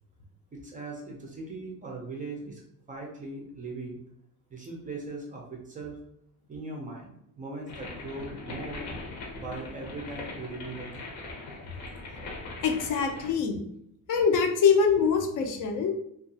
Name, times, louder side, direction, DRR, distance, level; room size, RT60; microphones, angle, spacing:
voice 1, 0.5-2.6 2.9-4.0 4.5-6.0 6.5-8.8 9.3-11.1, right 3 dB, 25° right, 0 dB, 0.3 m, -39 dB
sound 1, 7.7-13.3, left 2 dB, 80° left, 0.9 m, -40 dB
voice 2, 12.6-13.6 14.1-15.9, left 6 dB, 60° left, 4 dB, 0.5 m, -24 dB
2.8 x 2.3 x 2.6 m, 0.73 s
cardioid pair, 175°, 35 cm